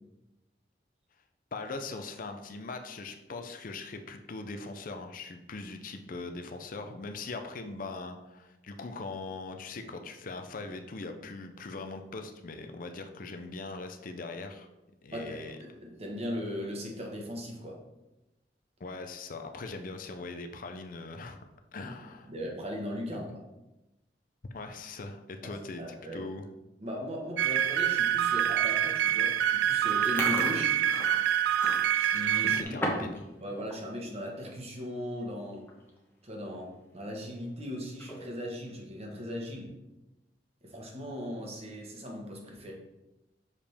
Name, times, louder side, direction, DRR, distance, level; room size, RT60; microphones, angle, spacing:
voice 1, 1.5-14.7 15.0-15.6 18.8-21.4 21.7-22.3 24.5-26.5 32.4-33.5, left 3 dB, 50° left, 6 dB, 0.5 m, -41 dB
voice 2, 15.1-17.8 21.8-21.9 22.2-23.3 25.8-26.3 26.8-30.8 32.0-32.8 33.4-35.6 36.2-39.7 40.6-42.7, equal, 35° right, 0 dB, 1.4 m, -38 dB
sound 1, 27.4-32.6, right 10 dB, 75° right, 0.3 m, -26 dB
Chewing mastication, 29.9-33.2 33.5-33.8 34.2-34.5 35.2-35.3 35.5-35.9 36.3-36.4 37.8-38.4, left 1 dB, 15° left, 1.1 m, -36 dB
6.7 x 5.0 x 3.4 m, 0.99 s
head